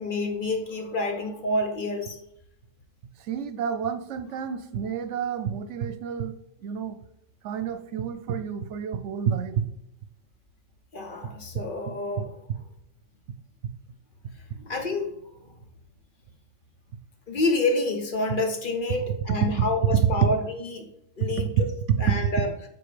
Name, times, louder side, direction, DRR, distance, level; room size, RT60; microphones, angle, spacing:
voice 1, 0.0-2.2 10.9-12.3 14.6-15.2 17.3-20.9 21.2-22.5, left 2 dB, 50° left, 4 dB, 0.9 m, -28 dB
voice 2, 3.3-6.3 6.6-7.0 7.4-9.6 19.9-20.0 21.2-21.3, right 8 dB, 75° right, 10 dB, 0.9 m, -29 dB
4.8 x 4.0 x 4.9 m, 0.79 s
omnidirectional pair, 1.2 m